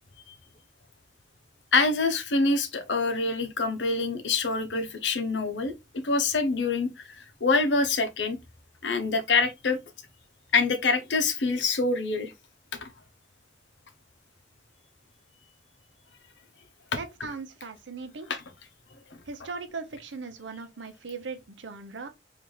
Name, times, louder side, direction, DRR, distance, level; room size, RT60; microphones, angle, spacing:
voice 1, 1.7-5.7 6.0-8.4 8.8-9.8 10.5-12.3 12.8-12.9 18.3-18.4, left 3 dB, 75° left, 0.8 m, -25 dB
voice 2, 17.0-18.3 19.3-22.1, right 4 dB, 90° right, 0.8 m, -38 dB
3.8 x 2.6 x 3.1 m
head